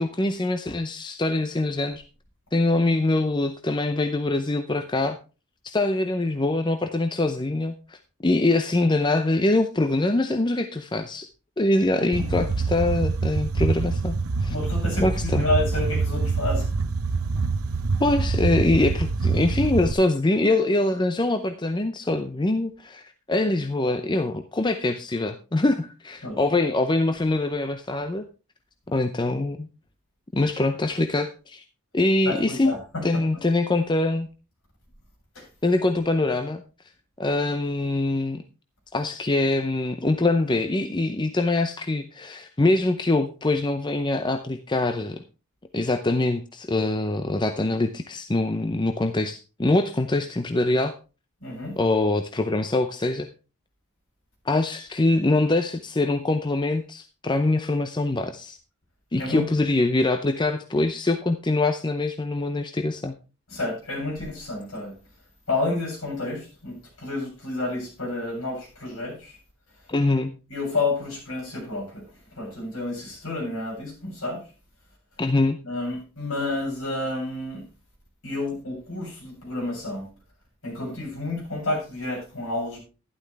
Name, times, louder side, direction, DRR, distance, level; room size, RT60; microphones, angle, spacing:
voice 1, 0.0-2.0 2.5-5.2 5.6-11.3 11.6-14.5 15.0-15.5 18.0-28.2 28.9-29.7 30.3-31.6 31.9-32.7 33.0-34.3 35.6-36.6 37.2-38.4 38.9-45.2 45.7-50.9 51.8-53.3 54.4-58.6 59.1-63.1 69.9-70.3 75.2-75.6, left 2 dB, 20° left, 0.6 m, -24 dB
voice 2, 12.0-12.4 14.5-16.7 26.2-26.4 32.3-33.4 35.3-35.5 51.4-51.8 59.2-59.5 63.5-64.9 65.5-69.4 70.5-72.1 72.3-74.5 75.6-77.6 78.2-80.1 80.6-82.8, left 2 dB, 60° left, 7.6 m, -30 dB
sound 1, 12.1-19.9, right 4 dB, 75° right, 0.7 m, -25 dB
12.0 x 11.5 x 3.4 m
head